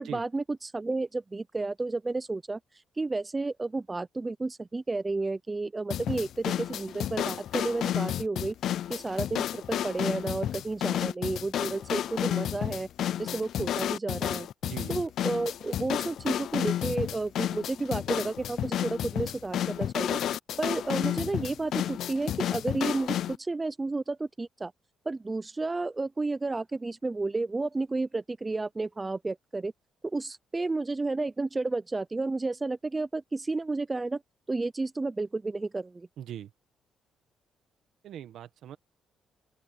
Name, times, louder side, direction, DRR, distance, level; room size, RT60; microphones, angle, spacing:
voice 1, 0.0-2.6 3.0-8.5 8.9-12.9 13.2-14.5 14.9-20.2 20.6-24.7 25.1-29.7 30.0-34.2 34.5-36.1, right 3 dB, 20° right, 0.6 m, -32 dB
sound 1, 5.9-23.4, left 11 dB, 70° left, 0.3 m, -31 dB
voice 2, 14.6-15.0 36.2-36.5 38.0-38.8, right 10 dB, 75° right, 1.4 m, -40 dB
open air
cardioid pair, 95°, 0 cm